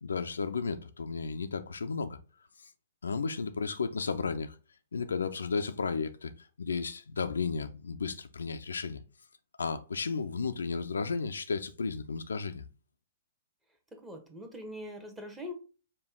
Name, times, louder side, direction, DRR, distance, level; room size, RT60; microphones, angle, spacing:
voice 1, 0.0-2.2 3.0-4.6 4.9-6.3 6.6-9.0 9.6-12.6, left 5 dB, 70° left, 0.3 m, -33 dB
voice 2, 13.9-15.5, left 1 dB, 10° right, 0.9 m, -42 dB
5.2 x 2.3 x 3.5 m
figure-of-eight pair, 115°, 0 cm